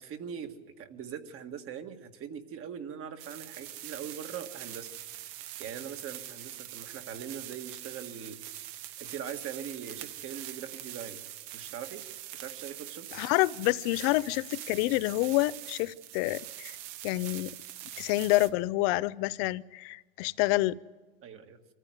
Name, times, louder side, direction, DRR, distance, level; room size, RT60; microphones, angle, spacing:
voice 1, 0.0-4.9 5.6-8.6 9.0-11.2 11.5-12.0 12.3-13.1 21.2-21.6, right 8 dB, 40° right, 1.8 m, -41 dB
sound 1, 3.2-18.5, right 13 dB, 55° right, 1.2 m, -43 dB
voice 2, 13.1-16.8 17.0-17.5 18.0-20.7, left 19 dB, 60° left, 0.7 m, -28 dB
24.0 x 14.5 x 9.3 m
supercardioid pair, 115°, 35 cm